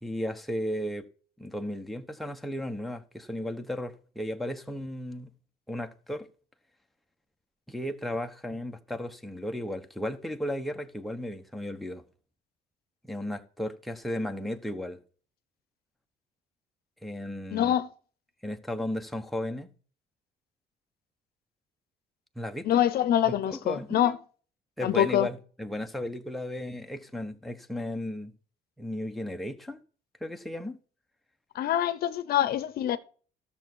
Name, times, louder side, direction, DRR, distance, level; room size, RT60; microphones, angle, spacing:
voice 1, 0.0-1.1 1.4-5.3 5.7-6.3 7.7-12.0 13.0-15.0 17.0-17.7 18.4-19.7 22.4-22.8 23.3-24.1 24.8-28.3 28.8-29.8 30.2-30.8, left 1 dB, ahead, 1.1 m, -35 dB
voice 2, 17.5-17.9 22.6-24.2 24.8-25.3 31.5-33.0, left 11 dB, 65° left, 0.8 m, -25 dB
13.0 x 7.0 x 4.6 m
cardioid pair, 110°, 17 cm